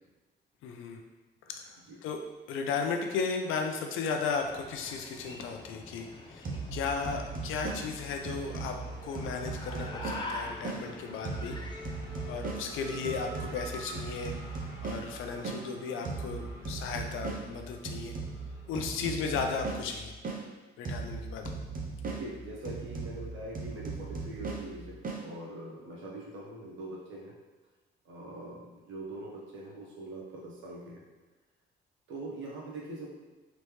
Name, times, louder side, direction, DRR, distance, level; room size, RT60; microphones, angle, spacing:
voice 1, 0.6-1.0 1.5-2.2 2.5-11.6 12.3-14.3 14.8-18.2 18.7-20.2 20.8-21.5, left 5 dB, 85° left, 4 dB, 0.5 m, -35 dB
sound 1, 4.2-12.8, left 2 dB, 25° left, 0.6 m, -45 dB
Race car auto racing / Accelerating revving vroom, 4.8-5.7 6.0-19.7, right 1 dB, 15° right, 1.0 m, -50 dB
sound 2, 6.4-10.8 11.2-15.6 16.0-20.4 20.8-25.2, right 4 dB, 45° right, 0.7 m, -39 dB
voice 2, 22.0-27.3 28.0-31.0 32.1-33.1, right 2 dB, 75° right, -4 dB, 1.3 m, -43 dB
4.1 x 3.3 x 3.1 m, 1.2 s
cardioid pair, 90°, 20 cm